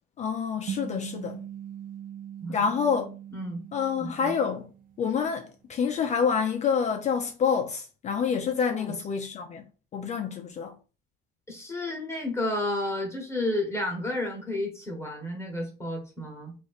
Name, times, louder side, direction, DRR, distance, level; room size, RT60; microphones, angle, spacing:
voice 1, 0.2-1.4 2.5-3.2 3.7-4.7 5.0-9.6 9.9-10.8, left 6 dB, 35° left, 0.4 m, -27 dB
sound 1, 0.7-5.3, right 9 dB, 40° right, 0.4 m, -41 dB
voice 2, 3.3-3.6 4.0-4.4 8.7-8.9 11.5-16.5, left 1 dB, 15° left, 1.1 m, -31 dB
3.1 x 2.5 x 4.0 m
cardioid pair, 120°, 21 cm